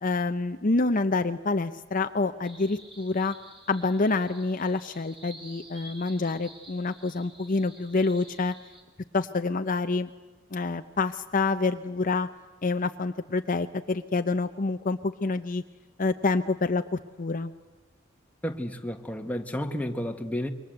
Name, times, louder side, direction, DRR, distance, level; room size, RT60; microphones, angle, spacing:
voice 1, 0.0-3.3 3.7-8.5 9.1-10.1 10.5-12.3 12.6-15.6 16.0-17.5, left 3 dB, 45° left, 0.7 m, -27 dB
sound 1, 2.4-8.8, right 1 dB, 25° right, 4.2 m, -50 dB
voice 2, 18.4-20.5, equal, 10° left, 1.6 m, -31 dB
27.5 x 23.5 x 7.9 m
head